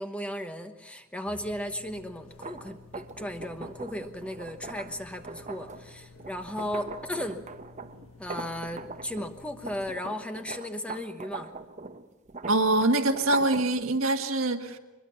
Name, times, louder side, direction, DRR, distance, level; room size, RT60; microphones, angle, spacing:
voice 1, 0.0-7.5 8.2-11.5, left 1 dB, 5° left, 6 dB, 1.1 m, -36 dB
sound 1, 1.4-9.9, left 4 dB, 85° left, 1.6 m, -53 dB
sound 2, 2.3-9.3 9.6-13.8, right 4 dB, 35° right, 0.9 m, -41 dB
voice 2, 12.5-14.8, right 2 dB, 85° right, 4 dB, 1.7 m, -24 dB
22.5 x 22.0 x 5.9 m, 1.1 s
head